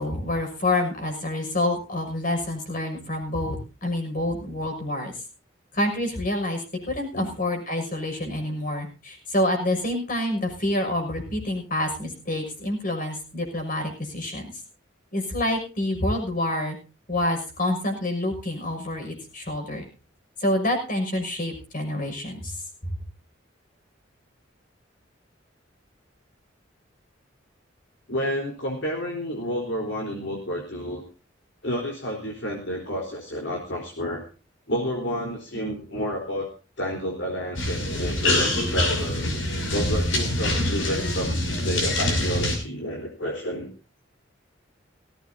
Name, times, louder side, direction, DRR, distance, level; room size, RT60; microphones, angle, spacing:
voice 1, 0.0-3.6 3.8-5.1 5.7-14.5 15.1-16.8 17.1-19.9 20.4-22.5, left 1 dB, 45° left, 4 dB, 6.1 m, -27 dB
voice 2, 28.1-31.0 31.6-34.2 34.7-36.5 36.8-39.3 39.7-43.7, equal, 65° left, 0 dB, 4.0 m, -30 dB
sound 1, 37.6-42.6, left 1 dB, 85° left, 6.0 m, -25 dB
19.0 x 16.5 x 2.7 m, 0.33 s
head